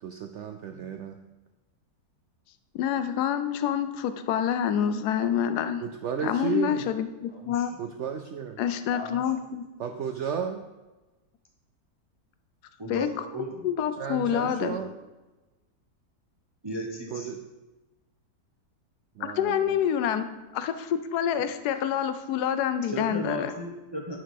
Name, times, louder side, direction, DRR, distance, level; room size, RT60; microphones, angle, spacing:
voice 1, 0.0-1.2 5.8-6.8 7.8-8.6 9.8-10.6 14.0-14.9 17.1-17.4 19.2-19.8, right 7 dB, 80° right, 6 dB, 0.6 m, -33 dB
voice 2, 2.7-5.8 6.2-7.7 8.6-9.6 12.9-13.1 13.6-14.8 19.2-20.3 20.5-23.5, left 9 dB, 75° left, 10 dB, 1.2 m, -27 dB
voice 3, 7.3-7.6 8.9-9.2 12.8-13.7 14.2-14.3 14.6-14.8 16.6-17.3 22.9-24.2, right 1 dB, 20° right, -1 dB, 0.7 m, -36 dB
10.0 x 4.9 x 4.7 m, 1.1 s
omnidirectional pair, 1.7 m